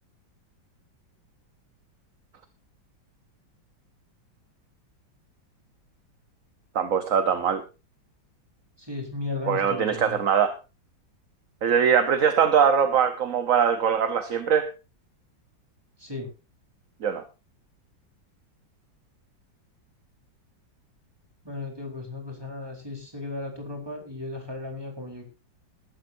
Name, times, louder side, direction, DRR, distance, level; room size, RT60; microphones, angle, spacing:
voice 1, 6.7-7.6 9.5-10.5 11.6-14.7 17.0-17.2, right 7 dB, 50° right, 1.3 m, -22 dB
voice 2, 8.8-10.2 16.0-16.3 21.4-25.3, left 2 dB, 10° right, 4.1 m, -35 dB
20.0 x 12.0 x 2.7 m
omnidirectional pair, 2.1 m